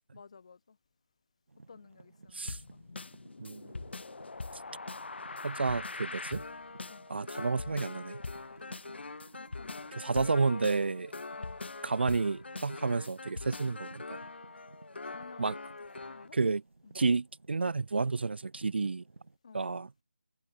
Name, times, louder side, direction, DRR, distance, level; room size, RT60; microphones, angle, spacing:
voice 1, 0.1-0.8 1.7-2.8 6.9-7.1 8.6-9.1 9.4-10.1 11.3-11.6 15.0-15.4 16.0-16.4 16.8-16.9 19.4-19.6, left 5 dB, 30° left, 1.3 m, -54 dB
sound 1, 1.5-19.4, right 3 dB, 80° right, 3.5 m, -58 dB
sound 2, 2.5-16.3, left 3 dB, 55° left, 3.9 m, -42 dB
voice 2, 5.4-6.4 7.1-8.2 9.9-11.1 11.8-14.2 15.4-15.6 16.3-16.6 16.9-19.0 19.5-19.9, right 4 dB, 55° right, 0.4 m, -30 dB
figure-of-eight pair, 180°, 7 cm